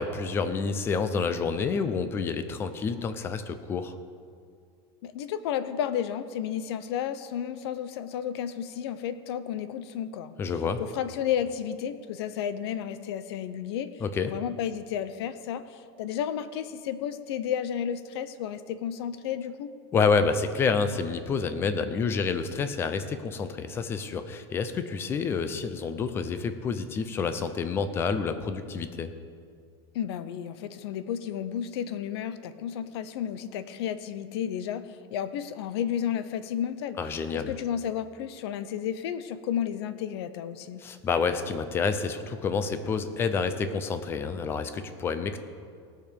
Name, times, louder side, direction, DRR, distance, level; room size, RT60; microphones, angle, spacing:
voice 1, 0.0-4.0 10.4-10.8 14.0-14.3 19.9-29.1 37.0-37.5 40.8-45.4, left 5 dB, 15° left, 10 dB, 0.5 m, -28 dB
voice 2, 5.0-10.3 10.8-13.9 14.2-19.7 29.9-34.8 35.1-37.0 37.3-40.8, left 9 dB, 70° left, 12 dB, 0.8 m, -32 dB
18.0 x 6.8 x 5.3 m, 2.2 s
supercardioid pair, 175°, 14 cm